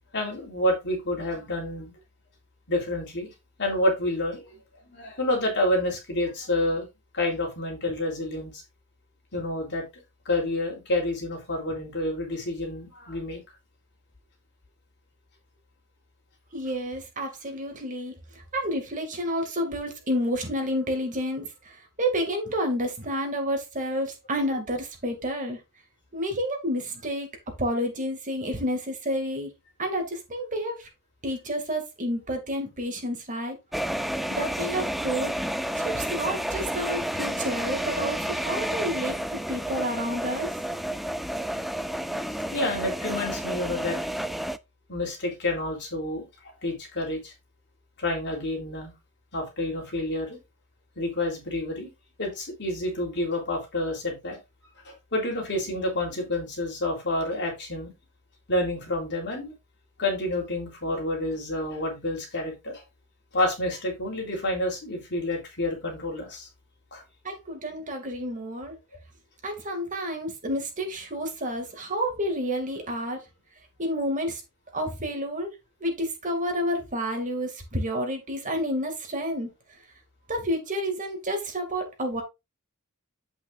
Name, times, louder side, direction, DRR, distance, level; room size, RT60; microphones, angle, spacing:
voice 1, 0.1-1.9 2.7-3.3 3.6-4.6 4.9-6.9 7.1-8.6 9.3-9.8 10.3-13.4 42.5-44.0 44.9-46.3 46.6-47.3 48.0-48.9 49.3-50.4 51.0-51.9 52.2-54.4 54.9-57.9 58.5-59.5 60.0-62.8 63.3-66.5 66.9-67.0, left 1 dB, 50° left, 3.8 m, -29 dB
voice 2, 16.5-25.6 26.1-27.3 27.6-29.5 29.8-30.9 31.2-33.6 34.3-35.3 35.7-40.5 67.2-68.8 69.4-73.2 73.8-74.4 74.7-79.5 80.3-82.2, equal, 35° right, 2.5 m, -30 dB
sound 1, 33.7-44.6, right 1 dB, ahead, 0.4 m, -30 dB
8.6 x 8.1 x 2.6 m
head